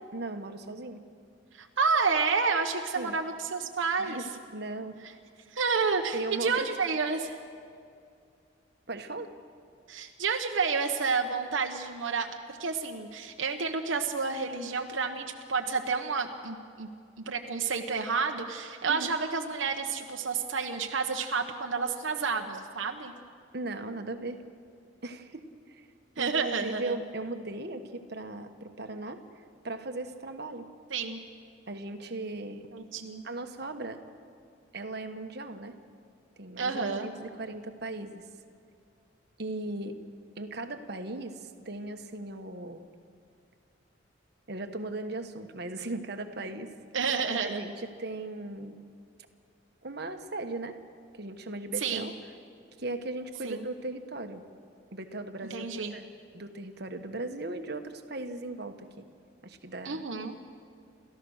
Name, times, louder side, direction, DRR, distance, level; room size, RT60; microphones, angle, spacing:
voice 1, 0.1-1.0 2.9-3.1 4.0-5.0 6.1-6.7 8.9-9.3 18.9-19.1 23.5-24.4 25.0-25.9 26.2-29.2 29.6-30.7 31.7-32.6 33.2-34.0 34.7-35.8 36.4-38.3 39.4-40.0 40.4-42.9 44.5-46.7 47.4-48.9 49.8-50.8 51.1-52.1 52.8-54.4 54.9-59.0 59.4-60.0, right 2 dB, 55° right, 7 dB, 1.3 m, -38 dB
voice 2, 1.5-4.2 5.5-7.4 9.9-16.9 17.2-23.1 26.2-26.9 30.9-31.2 32.7-33.2 36.6-37.1 46.9-47.6 51.8-52.1 53.4-53.7 55.5-56.0 59.8-60.4, right 5 dB, 80° right, 3 dB, 1.0 m, -30 dB
28.5 x 14.5 x 6.4 m, 2.4 s
head